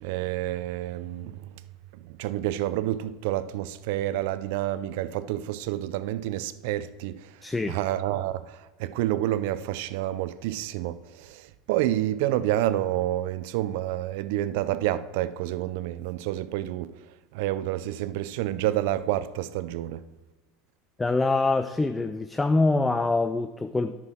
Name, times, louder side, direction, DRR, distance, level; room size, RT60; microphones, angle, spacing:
voice 1, 0.0-1.4 2.0-7.3 7.7-16.9 17.3-20.0, right 13 dB, 75° right, 0.4 m, -29 dB
voice 2, 7.4-7.8 21.0-23.9, left 3 dB, 10° left, 0.4 m, -24 dB
9.8 x 6.0 x 4.6 m
supercardioid pair, 120°, 0 cm